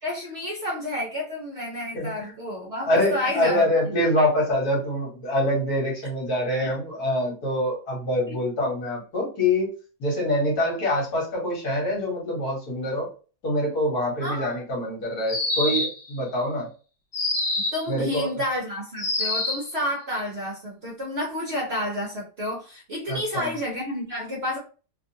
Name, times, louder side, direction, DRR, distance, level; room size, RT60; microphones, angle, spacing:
voice 1, 0.0-3.7 6.6-6.7 8.3-8.4 14.2-14.6 17.6-24.6, left 1 dB, 50° right, -3 dB, 0.8 m, -30 dB
voice 2, 1.9-2.3 2.8-9.7 10.0-13.1 13.4-16.7 17.9-18.3 23.1-23.5, left 1 dB, 65° left, -2 dB, 1.6 m, -25 dB
sound 1, 15.3-16.1 17.1-17.9 19.0-19.7, left 2 dB, 40° left, 1.0 m, -26 dB
3.0 x 2.3 x 2.6 m, 0.36 s
omnidirectional pair, 1.8 m